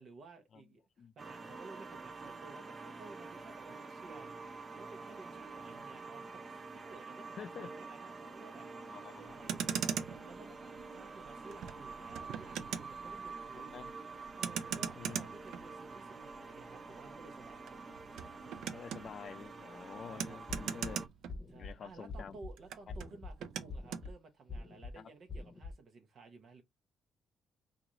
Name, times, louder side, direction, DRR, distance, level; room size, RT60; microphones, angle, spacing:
voice 1, 0.0-4.3 4.7-8.7 9.2-13.8 14.4-17.9 20.1-20.4 21.5-26.6, right 3 dB, 60° right, 0.9 m, -55 dB
sound 1, 1.2-21.1, right 4 dB, 35° right, 0.6 m, -48 dB
voice 2, 7.4-7.7 8.8-9.6 13.6-13.9 15.0-15.3 18.7-21.1 21.6-22.4 25.0-25.1, left 7 dB, 55° left, 0.4 m, -48 dB
Motor vehicle (road), 9.3-21.9 22.2-24.1, right 8 dB, 80° right, 0.4 m, -42 dB
sound 2, 20.5-20.9 21.3-21.7 22.1-22.5 22.9-23.3 23.7-24.1 24.5-24.9 25.3-25.7, left 3 dB, 25° left, 0.9 m, -44 dB
3.0 x 2.5 x 3.8 m
cardioid pair, 90°, 0 cm